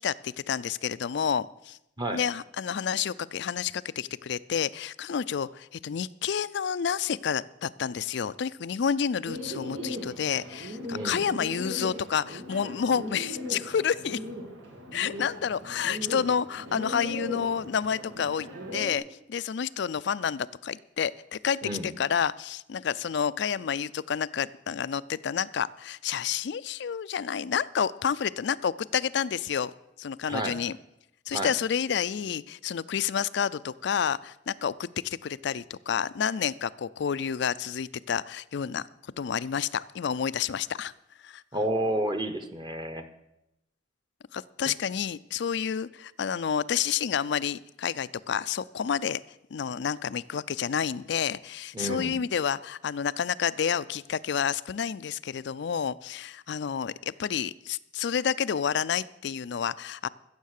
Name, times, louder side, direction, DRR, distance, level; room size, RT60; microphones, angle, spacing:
voice 1, 0.0-1.8 2.1-14.2 14.9-19.0 19.3-29.7 30.0-30.8 31.3-38.9 39.2-40.9 41.2-41.4 44.3-49.2 49.5-60.1, left 7 dB, 65° left, 18 dB, 0.4 m, -29 dB
Bird, 9.3-18.9, equal, 85° right, 2.4 m, -38 dB
voice 2, 10.9-11.2 21.6-21.9 30.3-30.6 31.3-31.5 41.5-43.1 51.7-52.1, right 1 dB, 25° right, 7 dB, 1.0 m, -30 dB
15.0 x 7.3 x 6.6 m, 0.84 s
head